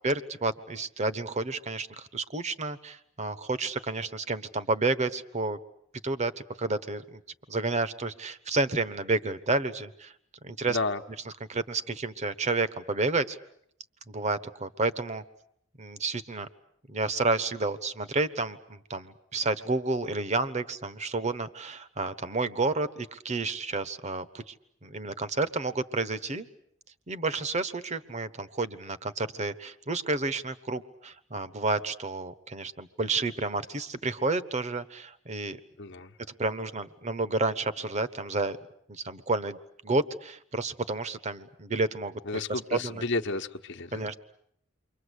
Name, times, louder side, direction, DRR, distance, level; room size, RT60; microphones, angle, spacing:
voice 1, 0.0-5.6 6.0-6.3 6.6-7.2 7.5-10.1 10.4-10.8 11.2-13.4 14.1-15.2 15.8-16.5 16.9-24.5 24.8-26.5 27.1-35.6 36.4-38.6 38.9-39.6 39.8-42.2 42.5-43.1 43.9-44.2, right 3 dB, 35° right, 12 dB, 1.1 m, -30 dB
voice 2, 10.7-11.0 35.8-36.1 42.3-44.0, left 3 dB, 60° left, 6 dB, 1.1 m, -31 dB
29.0 x 24.0 x 8.2 m, 0.69 s
head